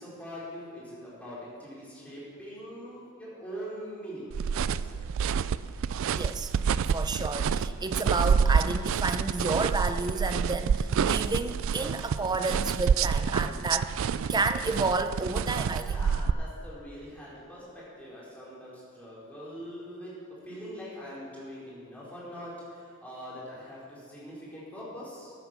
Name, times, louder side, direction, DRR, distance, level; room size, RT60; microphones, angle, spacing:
voice 1, 0.0-4.3 4.6-4.9 13.5-13.8 15.9-25.3, equal, 5° left, -8 dB, 4.3 m, -43 dB
sound 1, 4.3-16.3, right 6 dB, 65° right, 0.3 m, -28 dB
voice 2, 6.2-6.5 6.9-13.9 14.3-16.0, right 3 dB, 20° right, 9 dB, 0.6 m, -31 dB
14.5 x 9.2 x 6.1 m, 2.2 s
head